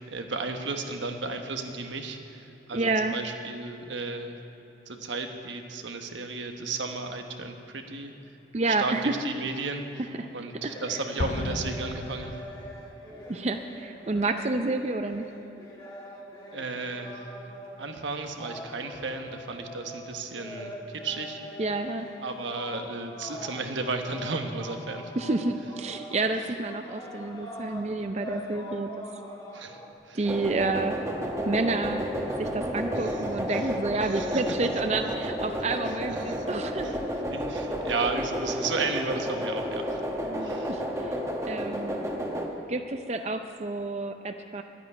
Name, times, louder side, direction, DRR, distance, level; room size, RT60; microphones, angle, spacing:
voice 1, 0.0-4.4 4.9-8.1 8.7-9.8 10.3-12.4 16.5-17.3 17.8-21.4 22.2-25.1 29.5-29.8 30.0-30.2 32.9-33.2 33.5-33.7 34.0-34.4 36.2-36.4 36.8-37.0 37.3-40.0 40.4-40.8, right 3 dB, 85° right, 5 dB, 1.2 m, -34 dB
voice 2, 2.7-3.1 8.5-9.1 10.6-10.7 13.3-15.3 21.6-22.1 25.2-28.9 30.1-31.0 31.5-32.0 32.4-36.9 40.2-41.2 41.5-42.0 42.7-44.6, right 3 dB, 35° right, 7 dB, 0.5 m, -29 dB
sound 1, 10.2-29.9, equal, 20° left, 1.4 m, -43 dB
Explosion, 11.2-13.0, left 2 dB, 40° left, 0.5 m, -34 dB
sound 2, 30.2-42.5, equal, 15° right, 1.2 m, -31 dB
12.0 x 9.2 x 9.6 m, 2.8 s
head